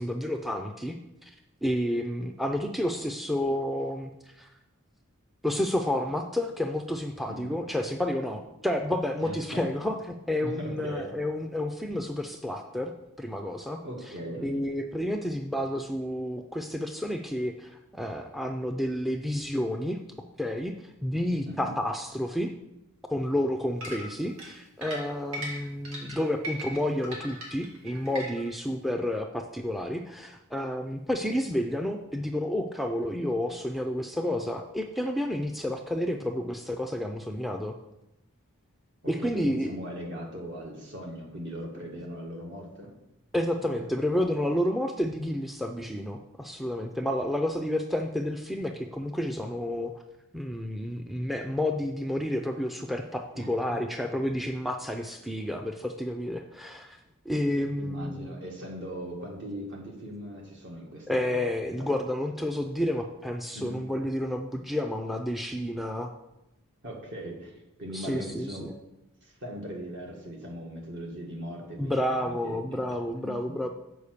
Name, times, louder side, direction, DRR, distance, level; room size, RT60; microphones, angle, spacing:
voice 1, 0.0-1.3 1.6-4.5 5.4-12.9 13.2-13.8 14.4-20.0 20.4-22.5 23.1-37.7 39.1-39.7 43.3-49.9 50.3-57.0 57.3-58.3 61.1-66.1 67.9-68.7 71.8-73.7, left 1 dB, ahead, 4 dB, 0.4 m, -30 dB
voice 2, 9.2-9.6 10.4-11.1 13.8-14.5 21.5-21.7 39.0-42.9 43.6-43.9 53.3-53.8 57.7-61.4 61.8-61.9 63.6-63.8 66.8-67.5 67.8-68.7 69.2-72.8 73.2-73.6, equal, 60° right, -1 dB, 2.0 m, -39 dB
sound 1, 23.8-28.6, right 1 dB, 75° right, 2.4 m, -38 dB
7.0 x 4.9 x 6.6 m, 0.91 s
head